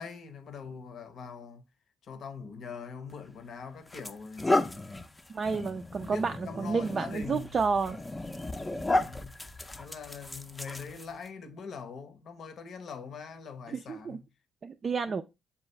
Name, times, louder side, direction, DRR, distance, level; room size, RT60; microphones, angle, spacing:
voice 1, 0.0-1.6 2.0-4.7 5.9-7.6 8.8-9.4 9.8-14.3 15.1-15.2, left 5 dB, 60° left, 0.8 m, -43 dB
sound 1, 3.1-3.3 3.9-11.3, left 2 dB, 20° left, 0.5 m, -33 dB
voice 2, 5.3-8.0 13.7-14.2 14.6-15.2, right 5 dB, 45° right, 0.3 m, -30 dB
6.8 x 2.3 x 3.1 m
hypercardioid pair, 55°, 0 cm